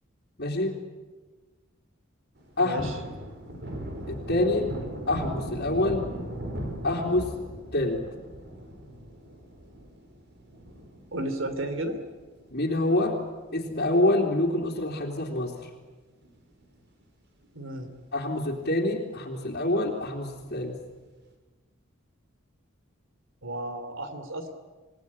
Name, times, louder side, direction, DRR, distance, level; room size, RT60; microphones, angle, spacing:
voice 1, 0.4-0.8 2.6-2.9 4.1-4.7 5.1-6.0 6.8-7.3 7.7-8.0 12.5-13.2 13.5-15.5 18.1-20.8, left 1 dB, 55° left, -4 dB, 3.2 m, -26 dB
Thunder, 2.4-13.1 13.5-13.6 13.9-15.4 15.7-15.9 16.2-17.0 17.4-17.5 17.9-18.0 20.3-20.9, right 1 dB, 55° right, 4.8 m, -39 dB
voice 2, 2.6-2.9 11.1-12.0 17.5-17.9 23.4-24.5, right 1 dB, 70° right, 9 dB, 3.3 m, -33 dB
28.0 x 18.5 x 9.8 m, 1.3 s
head